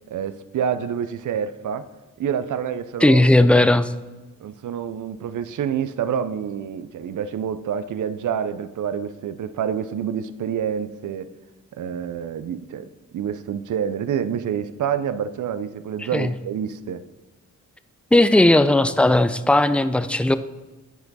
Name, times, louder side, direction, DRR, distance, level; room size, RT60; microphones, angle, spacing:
voice 1, 0.1-1.9 2.2-3.2 4.4-11.3 11.7-17.0, right 8 dB, 75° right, 12 dB, 0.5 m, -27 dB
voice 2, 3.0-3.9 16.1-16.3 18.1-20.4, left 1 dB, 5° left, 12 dB, 0.4 m, -16 dB
10.0 x 4.5 x 4.1 m, 1.1 s
cardioid pair, 50°, 31 cm